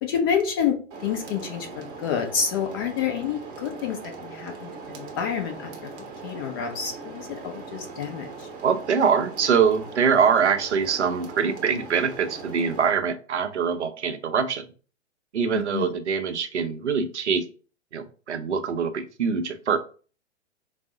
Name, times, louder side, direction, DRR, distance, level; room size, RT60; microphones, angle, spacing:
voice 1, 0.0-5.9 6.2-8.5 15.5-15.9, left 7 dB, 20° left, 4 dB, 0.4 m, -29 dB
sound 1, 0.9-12.9, right 4 dB, 25° right, 0.8 m, -40 dB
voice 2, 8.6-14.6 15.3-17.4 17.9-19.8, right 6 dB, 75° right, 8 dB, 0.7 m, -24 dB
4.7 x 2.0 x 3.7 m, 0.38 s
figure-of-eight pair, 110°, 35 cm